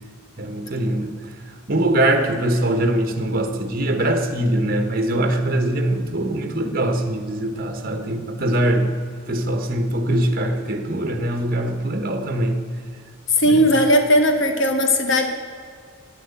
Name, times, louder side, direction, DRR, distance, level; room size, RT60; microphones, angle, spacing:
voice 1, 0.4-1.3 1.7-8.9 9.3-12.7 13.4-13.7, right 1 dB, 45° right, 6 dB, 1.3 m, -22 dB
voice 2, 13.4-15.3, equal, 60° left, 6 dB, 1.4 m, -17 dB
11.0 x 10.0 x 8.3 m, 2.1 s
head